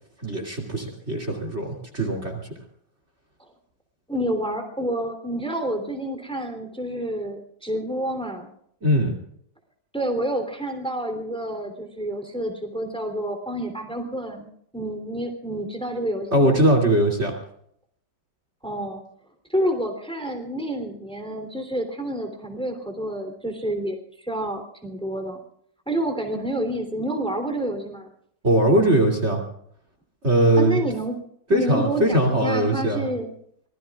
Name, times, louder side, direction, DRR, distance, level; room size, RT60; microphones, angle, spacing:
voice 1, 0.2-2.5 8.8-9.1 16.3-17.3 28.4-29.4 30.2-30.8 31.5-33.1, right 1 dB, 35° right, 3 dB, 3.0 m, -20 dB
voice 2, 4.1-8.5 9.9-14.5 14.7-16.6 18.6-19.0 19.5-25.4 25.9-28.1 30.6-31.2 31.5-33.3, right 1 dB, 5° left, 4 dB, 3.0 m, -29 dB
25.0 x 20.5 x 2.4 m, 0.67 s
omnidirectional pair, 1.9 m